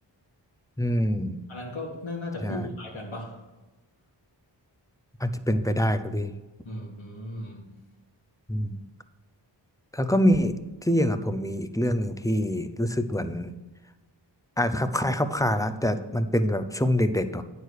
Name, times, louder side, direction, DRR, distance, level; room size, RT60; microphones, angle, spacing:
voice 1, 0.8-1.4 2.4-2.7 5.2-6.3 8.5-8.8 9.9-13.5 14.6-17.4, equal, 10° left, 10 dB, 0.5 m, -25 dB
voice 2, 1.5-3.5 6.6-7.7, left 1 dB, 85° left, -3 dB, 2.1 m, -36 dB
9.7 x 4.6 x 6.4 m, 1.1 s
wide cardioid pair, 95°, 46 cm